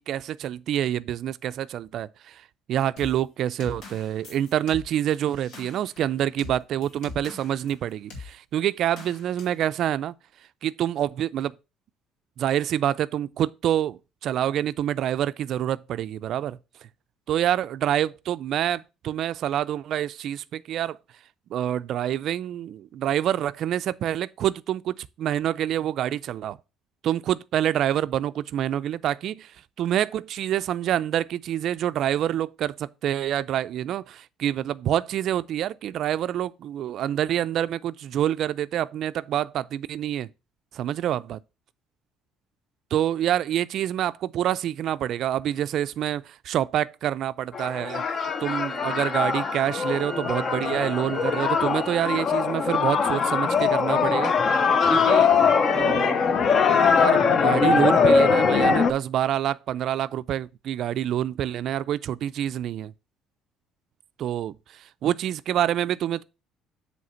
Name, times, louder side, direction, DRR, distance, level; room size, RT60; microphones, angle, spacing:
voice 1, 0.1-2.4 2.7-10.1 10.6-11.5 12.4-16.6 17.3-21.0 21.5-26.6 27.0-40.3 40.7-41.4 42.9-48.0 48.4-54.3 54.9-56.4 56.9-62.9 64.2-66.2, right 11 dB, 50° right, 0.3 m, -27 dB
sound 1, 3.0-7.8 8.1-8.3 9.0-9.6, left 3 dB, 65° left, 2.4 m, -42 dB
sound 2, 47.5-58.9, left 5 dB, 35° left, 0.6 m, -21 dB
Wind instrument woodwind instrument, 48.1-52.1, right 3 dB, 5° right, 1.2 m, -40 dB
7.7 x 3.2 x 5.6 m
cardioid pair, 155°, 0 cm